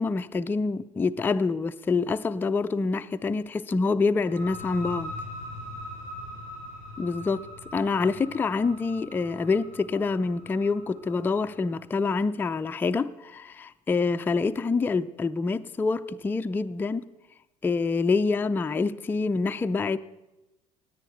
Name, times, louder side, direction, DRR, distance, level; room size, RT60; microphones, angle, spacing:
voice 1, 0.0-5.1 7.0-17.1 17.6-20.0, left 4 dB, 10° left, 0.4 m, -26 dB
sound 1, 4.2-11.7, left 1 dB, 75° right, 5.4 m, -41 dB
16.5 x 9.8 x 4.4 m
figure-of-eight pair, 60°, 17 cm